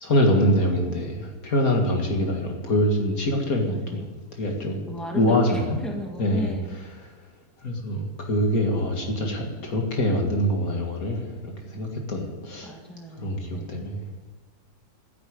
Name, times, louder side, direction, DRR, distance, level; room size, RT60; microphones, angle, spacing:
voice 1, 0.0-4.1 4.4-4.8 5.2-5.8 6.2-6.5 7.6-12.7 13.2-14.1, equal, 70° left, 1 dB, 2.6 m, -24 dB
voice 2, 3.7-4.1 4.9-6.8 12.6-13.9, equal, ahead, 0 dB, 2.2 m, -36 dB
12.5 x 10.0 x 8.9 m, 1.3 s
omnidirectional pair, 1.6 m